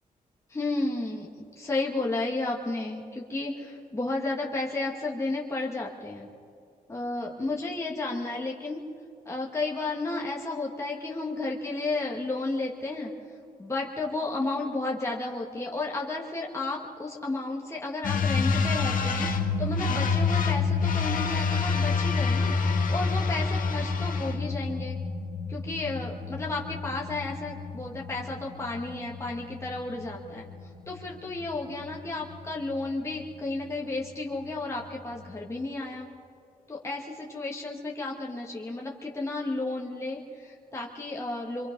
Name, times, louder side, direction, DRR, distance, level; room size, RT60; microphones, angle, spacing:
voice 1, 0.5-1.3 1.6-6.3 6.9-8.8 9.3-13.1 13.6-25.0 25.5-30.5 30.9-36.1 36.7-41.7, left 2 dB, 20° left, -2 dB, 2.0 m, -32 dB
sound 1, 18.0-35.5, left 4 dB, 65° left, 1.9 m, -29 dB
27.0 x 24.5 x 5.5 m, 2.4 s
wide cardioid pair, 145°, 15 cm